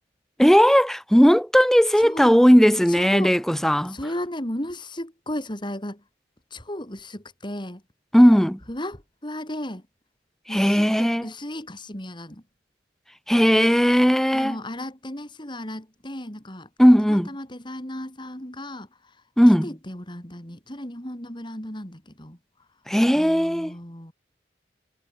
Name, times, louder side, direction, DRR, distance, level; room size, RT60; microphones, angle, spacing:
voice 1, 0.4-4.0 8.1-8.6 10.5-11.3 13.3-14.6 16.8-17.3 19.4-19.7 22.9-23.7, equal, ahead, 1.3 m, -17 dB
voice 2, 2.0-2.3 3.0-3.3 3.9-6.0 6.5-7.8 8.7-9.8 10.5-12.4 14.3-16.7 17.1-18.9 19.6-22.4 23.1-24.1, left 1 dB, 25° left, 4.3 m, -35 dB
head